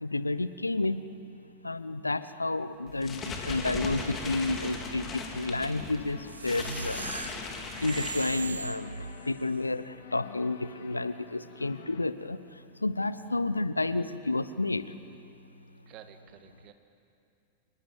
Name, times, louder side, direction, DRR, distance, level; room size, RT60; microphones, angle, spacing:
voice 1, 0.0-1.1 1.6-7.1 7.8-12.4 12.8-14.9, left 2 dB, 80° left, 15 dB, 0.8 m, -31 dB
sound 1, 2.9-8.8, left 4 dB, 25° left, 3.6 m, -38 dB
sound 2, 3.0-12.1, left 6 dB, 60° left, 1.6 m, -50 dB
sound 3, 6.3-9.5, right 4 dB, 75° right, 0.7 m, -39 dB
voice 2, 15.9-16.7, right 11 dB, 40° right, 8 dB, 2.1 m, -52 dB
26.0 x 20.0 x 9.8 m, 2.6 s
figure-of-eight pair, 90°, 0 cm